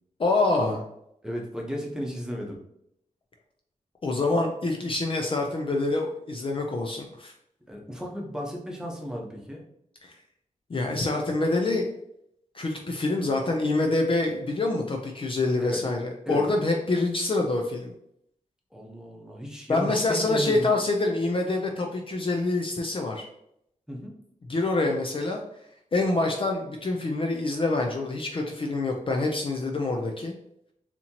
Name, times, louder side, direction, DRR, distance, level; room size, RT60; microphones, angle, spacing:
voice 1, 0.2-0.8 4.0-7.3 10.0-10.1 10.7-11.8 12.5-17.9 19.7-23.3 24.5-25.4 25.9-30.3, left 2 dB, 40° left, 1 dB, 0.5 m, -26 dB
voice 2, 1.2-2.6 7.7-9.6 15.6-15.8 16.3-16.5 18.7-20.8 23.9-24.1, equal, 5° right, -1 dB, 0.9 m, -34 dB
4.1 x 2.9 x 2.8 m, 0.76 s
wide cardioid pair, 95°, 14 cm